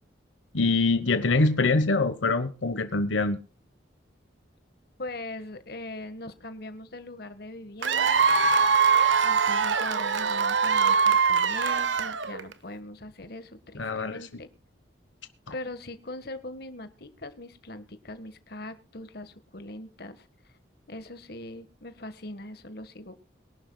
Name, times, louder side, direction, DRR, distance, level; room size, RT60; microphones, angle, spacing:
voice 1, 0.5-3.4 13.8-14.2, left 3 dB, 85° left, 1.2 m, -24 dB
voice 2, 5.0-8.2 9.2-14.5 15.5-20.3 20.9-23.2, left 2 dB, 55° left, 1.6 m, -41 dB
Cheering / Applause / Crowd, 7.8-12.5, right 5 dB, 85° right, 1.2 m, -22 dB
23.0 x 11.5 x 2.3 m
head